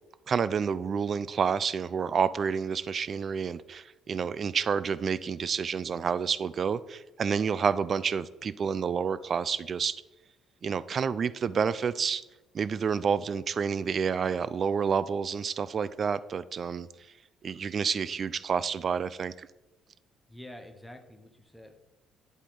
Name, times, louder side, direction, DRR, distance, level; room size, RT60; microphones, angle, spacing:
voice 1, 0.3-9.9 10.6-12.2 12.5-16.9 17.4-19.5, right 6 dB, 35° right, 16 dB, 0.3 m, -29 dB
voice 2, 20.3-21.7, left 1 dB, ahead, 4 dB, 0.8 m, -47 dB
11.0 x 4.3 x 3.8 m, 1.0 s
cardioid pair, 150°, 0 cm